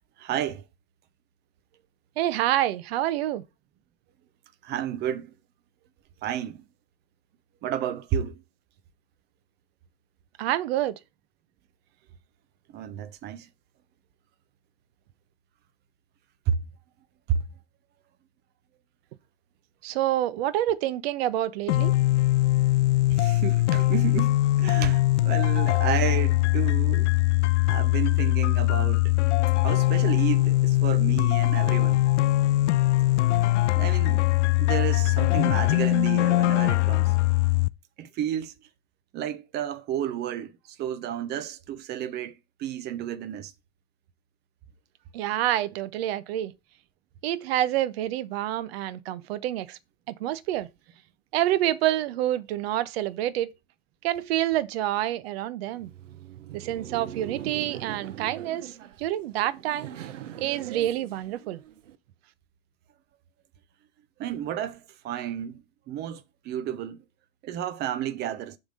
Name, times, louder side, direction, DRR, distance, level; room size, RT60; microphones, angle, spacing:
voice 1, 0.2-0.6 4.6-5.3 6.2-6.7 7.6-8.4 12.7-13.5 16.5-16.6 17.3-17.4 23.1-27.2 27.7-29.1 29.6-32.1 33.7-34.2 34.6-37.2 38.0-38.5 39.1-43.5 64.2-67.0 67.4-68.6, right 10 dB, 30° right, 0.8 m, -31 dB
voice 2, 2.2-3.4 10.4-11.0 19.8-21.9 45.1-46.5 47.2-49.8 50.1-50.7 51.3-53.5 54.0-55.9 56.5-59.9 60.4-61.6, right 13 dB, 55° right, 0.9 m, -27 dB
sound 1, 21.7-37.7, left 17 dB, 75° left, 0.5 m, -22 dB
Laughter, 55.7-62.0, right 10 dB, 90° right, 0.9 m, -41 dB
7.2 x 3.5 x 5.5 m
hypercardioid pair, 130°, 36 cm